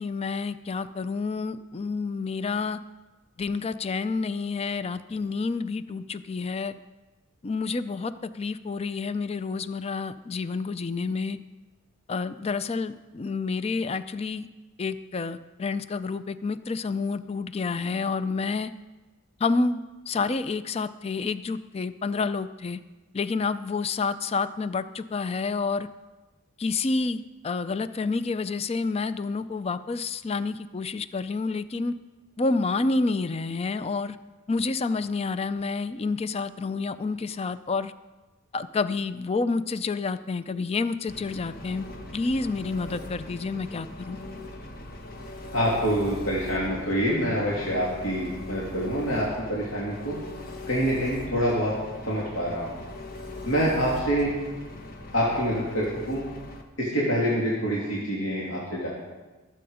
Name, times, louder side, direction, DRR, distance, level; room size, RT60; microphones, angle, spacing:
voice 1, 0.0-2.8 3.4-6.7 7.4-11.4 12.1-14.5 14.8-18.7 19.4-22.8 23.1-25.9 26.6-31.9 32.4-34.2 34.5-37.9 38.5-41.9 42.1-44.2, left 4 dB, 30° left, 13 dB, 0.4 m, -29 dB
Engine, 41.1-56.6, left 1 dB, 45° left, 1.4 m, -40 dB
voice 2, 45.5-50.2 50.7-51.7 52.0-52.8 53.4-54.4 55.1-56.2 56.8-58.9, equal, 70° left, -6 dB, 2.9 m, -26 dB
21.0 x 7.8 x 5.0 m, 1.2 s
head